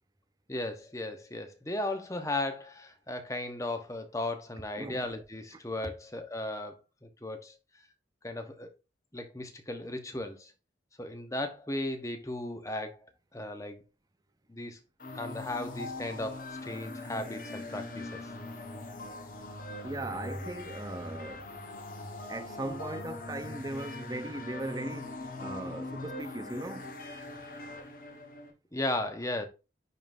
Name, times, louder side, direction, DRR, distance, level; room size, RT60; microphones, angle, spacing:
voice 1, 0.5-6.7 7.0-7.6 8.2-8.7 9.1-10.5 11.0-13.8 14.5-14.8 15.1-18.2 28.7-29.5, left 2 dB, 15° left, 0.9 m, -36 dB
sound 1, 15.0-28.5, left 2 dB, 50° left, 1.3 m, -41 dB
voice 2, 19.8-21.5 22.3-26.8, right 2 dB, 20° right, 0.5 m, -38 dB
9.9 x 3.8 x 2.6 m
head